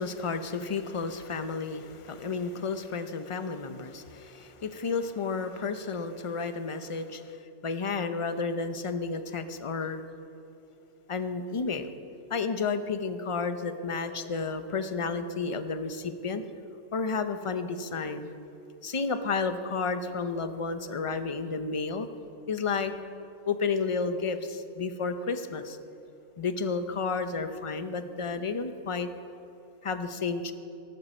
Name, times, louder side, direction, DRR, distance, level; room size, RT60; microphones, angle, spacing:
voice 1, 0.0-7.4 7.6-10.0 11.1-11.9 12.3-16.4 16.9-18.3 18.8-22.1 22.5-22.9 23.5-25.8 26.4-29.1 29.8-30.5, left 4 dB, 35° left, 9 dB, 0.5 m, -31 dB
19.0 x 12.0 x 4.3 m, 3.0 s
omnidirectional pair, 1.4 m